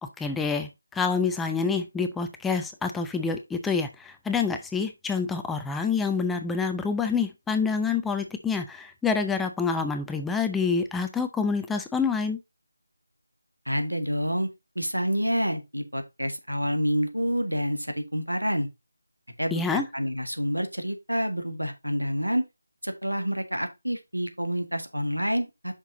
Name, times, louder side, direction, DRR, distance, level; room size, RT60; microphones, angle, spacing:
voice 1, 0.0-12.4 19.5-19.9, left 5 dB, 5° left, 0.4 m, -27 dB
voice 2, 13.6-14.5 14.7-18.7 19.4-22.4 22.8-25.7, equal, 90° right, 1.7 m, -28 dB
5.9 x 5.7 x 3.9 m
figure-of-eight pair, 160°, 0 cm